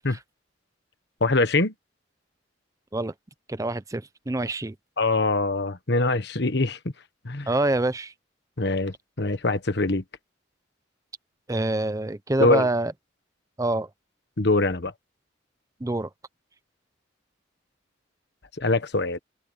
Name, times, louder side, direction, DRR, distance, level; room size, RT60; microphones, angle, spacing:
voice 1, 1.2-1.7 5.0-6.8 7.2-7.5 8.6-10.0 12.4-12.7 14.4-14.9 18.6-19.2, left 2 dB, 60° left, 1.4 m, -23 dB
voice 2, 3.5-4.7 7.5-8.1 11.5-12.9 13.6-13.9 15.8-16.1, right 2 dB, 15° right, 0.6 m, -26 dB
open air
head